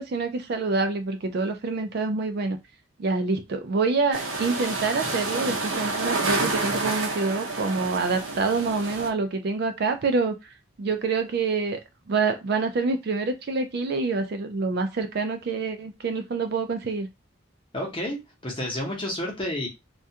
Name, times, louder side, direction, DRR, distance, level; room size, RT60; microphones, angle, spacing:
voice 1, 0.0-2.6 3.0-11.8 12.1-17.1, right 4 dB, 50° right, 0.4 m, -26 dB
sound 1, 4.1-9.1, right 3 dB, 80° right, 0.7 m, -29 dB
voice 2, 17.7-19.7, left 1 dB, 25° left, 0.8 m, -30 dB
2.4 x 2.2 x 2.6 m
head